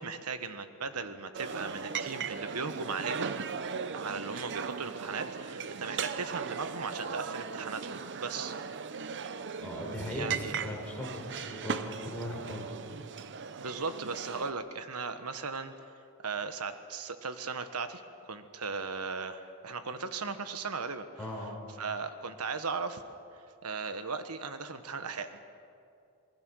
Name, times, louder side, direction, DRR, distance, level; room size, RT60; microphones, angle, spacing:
voice 1, 0.0-8.8 10.1-10.5 13.3-15.7 16.2-21.0 21.8-23.0 23.6-25.4, right 4 dB, 85° right, 9 dB, 1.3 m, -37 dB
sound 1, 1.3-14.5, right 6 dB, 55° right, 0.7 m, -38 dB
voice 2, 9.6-12.6 21.2-21.6, left 1 dB, 10° left, -3 dB, 5.5 m, -38 dB
26.0 x 20.5 x 6.4 m, 2.5 s
head